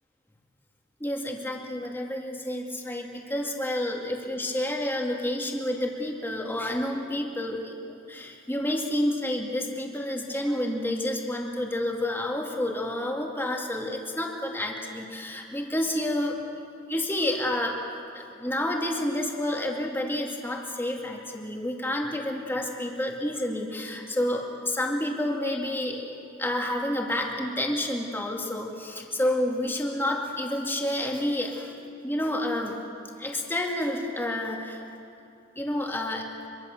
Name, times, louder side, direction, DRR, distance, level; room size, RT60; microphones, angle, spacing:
voice 1, 1.0-17.8 18.1-31.8 32.0-34.8 35.6-36.3, left 1 dB, 10° left, 0 dB, 2.4 m, -29 dB
25.5 x 24.0 x 6.8 m, 2.5 s
head